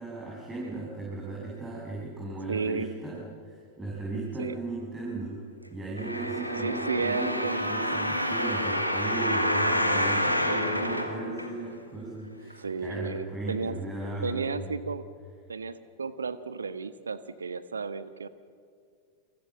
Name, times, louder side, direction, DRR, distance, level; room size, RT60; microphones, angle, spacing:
voice 1, 0.0-14.8, right 2 dB, 15° right, -4 dB, 7.0 m, -36 dB
voice 2, 2.5-2.9 4.4-4.5 6.6-7.6 9.9-10.2 12.4-13.8 14.2-15.0 15.5-18.3, right 4 dB, 75° right, 14 dB, 1.3 m, -33 dB
sound 1, 6.0-11.9 12.5-12.6, equal, 90° right, 2.6 m, -28 dB
29.0 x 24.5 x 7.5 m, 2.2 s
figure-of-eight pair, 90°, 0 cm